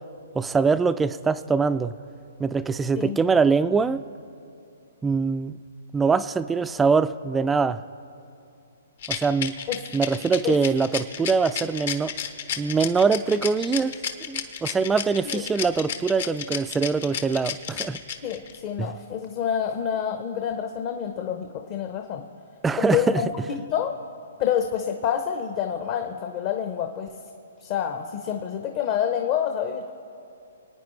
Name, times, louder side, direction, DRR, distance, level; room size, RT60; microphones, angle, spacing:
voice 1, 0.3-1.9 2.4-4.0 5.0-5.5 5.9-7.8 9.1-9.5 9.9-12.1 12.6-13.9 14.3-18.0 18.8-18.9 22.6-23.2, right 5 dB, 10° right, 14 dB, 0.3 m, -23 dB
Rattle, 9.0-18.6, left 8 dB, 55° left, 1.0 m, -31 dB
voice 2, 18.2-22.2 22.8-23.9 24.4-27.1 27.6-29.9, left 9 dB, 35° left, 4 dB, 0.8 m, -27 dB
26.0 x 9.4 x 3.2 m, 2.6 s
hypercardioid pair, 135°, 0 cm